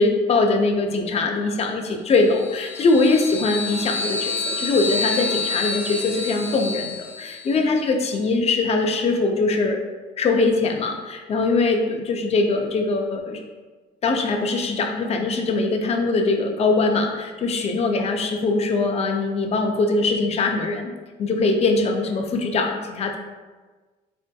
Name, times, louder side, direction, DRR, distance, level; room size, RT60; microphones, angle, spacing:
voice 1, 0.0-9.8 10.2-13.4 14.0-20.9 21.2-23.2, left 3 dB, 40° left, 4 dB, 0.4 m, -22 dB
sound 1, 2.2-7.6, left 4 dB, 15° right, 1.3 m, -29 dB
4.1 x 2.7 x 2.2 m, 1.3 s
cardioid pair, 110°, 17 cm